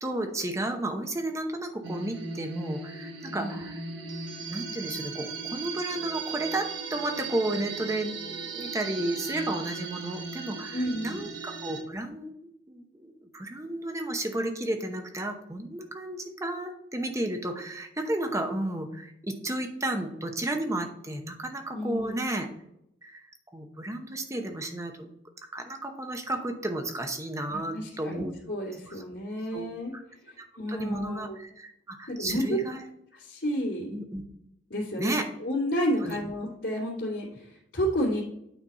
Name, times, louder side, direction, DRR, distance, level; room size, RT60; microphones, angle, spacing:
voice 1, 0.0-3.8 4.5-12.3 12.7-22.5 23.0-23.3 23.5-25.1 25.5-28.3 28.9-29.0 29.5-29.7 29.9-30.0 30.5-32.8 33.9-34.2 35.0-35.2 36.0-36.2, right 1 dB, 15° right, 4 dB, 0.8 m, -32 dB
sound 1, 1.8-11.8, right 4 dB, 85° right, 1.1 m, -37 dB
voice 2, 3.3-3.6 10.7-11.2 21.7-22.1 27.5-29.9 30.2-31.4 32.1-32.6 33.2-33.9 34.7-38.2, equal, 75° left, -8 dB, 2.3 m, -31 dB
9.0 x 4.1 x 4.2 m, 0.76 s
head